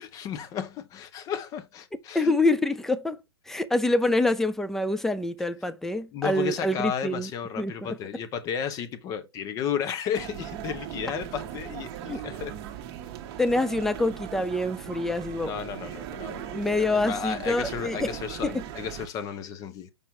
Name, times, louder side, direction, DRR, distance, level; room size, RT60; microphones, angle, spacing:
voice 1, 0.0-2.3 6.1-12.5 15.4-19.9, left 8 dB, 25° left, 0.9 m, -33 dB
voice 2, 2.1-3.2 3.5-7.3 7.6-8.0 12.1-12.2 13.4-15.5 16.5-18.2 18.4-18.6, left 2 dB, 5° left, 0.4 m, -26 dB
sound 1, 10.1-19.1, right 10 dB, 35° right, 1.0 m, -38 dB
5.4 x 4.5 x 4.5 m
hypercardioid pair, 125°, 13 cm